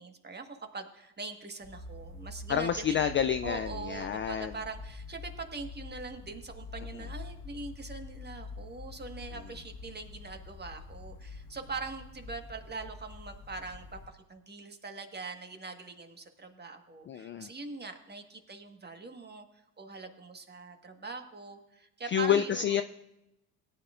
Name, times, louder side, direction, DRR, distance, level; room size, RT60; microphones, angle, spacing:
voice 1, 0.0-3.0 3.4-19.4 19.8-22.8, right 4 dB, 20° right, 5 dB, 1.5 m, -42 dB
sound 1, 1.6-14.1, left 3 dB, 50° left, 1.7 m, -46 dB
voice 2, 2.5-4.6 17.1-17.5 22.1-22.8, left 9 dB, 30° left, 9 dB, 0.4 m, -29 dB
18.0 x 9.6 x 2.5 m, 0.91 s
hypercardioid pair, 75°, 44 cm